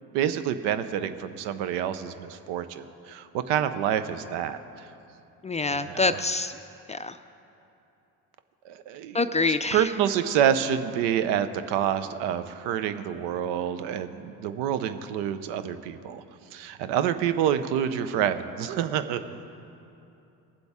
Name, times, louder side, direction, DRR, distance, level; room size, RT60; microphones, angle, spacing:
voice 1, 0.1-4.6 5.7-6.2 8.6-9.2 9.7-16.2 16.5-19.4, right 9 dB, 80° right, 11 dB, 0.7 m, -27 dB
voice 2, 5.4-6.5 6.9-7.2 9.1-9.9, left 3 dB, 20° left, 10 dB, 0.4 m, -26 dB
20.5 x 7.8 x 3.6 m, 2.8 s
supercardioid pair, 65°, 40 cm